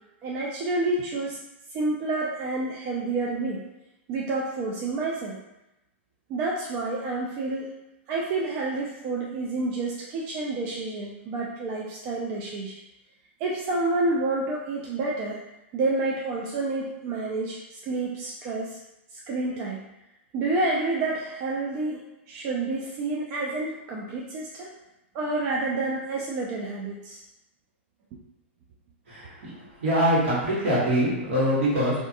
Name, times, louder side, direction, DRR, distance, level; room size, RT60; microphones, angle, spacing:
voice 1, 0.2-1.4 1.7-3.6 4.1-5.4 6.3-7.7 8.1-12.8 13.4-15.4 15.7-18.8 19.1-19.8 20.3-22.0 22.3-24.7 25.1-27.2, right 2 dB, 40° right, -3 dB, 0.4 m, -29 dB
voice 2, 29.8-31.9, equal, 75° right, -7 dB, 1.3 m, -23 dB
2.5 x 2.4 x 2.5 m, 0.92 s
hypercardioid pair, 120°, 7 cm